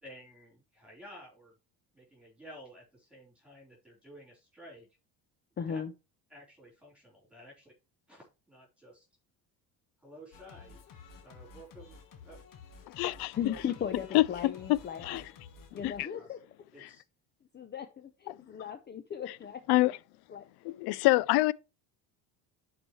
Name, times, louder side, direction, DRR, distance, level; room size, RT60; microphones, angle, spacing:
voice 1, 0.0-1.6 1.9-4.9 5.7-5.8 6.3-7.7 8.1-9.1 10.0-10.8 11.2-12.0 12.2-12.4 13.4-13.6 16.1-16.3 16.7-17.0, equal, 5° right, 4.0 m, -52 dB
voice 2, 5.6-5.9 13.3-15.3 15.7-16.4 17.5-19.6 20.3-20.5, left 8 dB, 25° left, 0.6 m, -37 dB
Singing, 10.3-16.0, left 5 dB, 50° left, 1.6 m, -52 dB
voice 3, 13.0-13.4 14.1-14.5 15.0-15.2 15.8-16.1 19.7-20.0 20.7-21.5, left 19 dB, 70° left, 0.5 m, -26 dB
10.5 x 4.8 x 3.2 m
cardioid pair, 120°, 41 cm